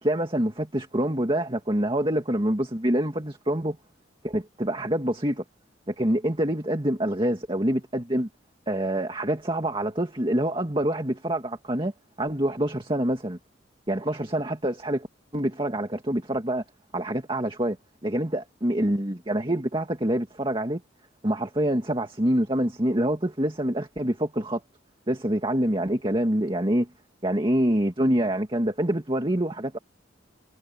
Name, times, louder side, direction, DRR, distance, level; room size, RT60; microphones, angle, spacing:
voice 1, 0.0-3.8 4.2-5.4 5.9-8.3 8.7-11.9 12.2-13.4 13.9-15.1 15.3-16.6 16.9-17.8 18.0-20.8 21.2-24.6 25.1-26.9 27.2-29.8, right 1 dB, 25° right, 2.1 m, -26 dB
head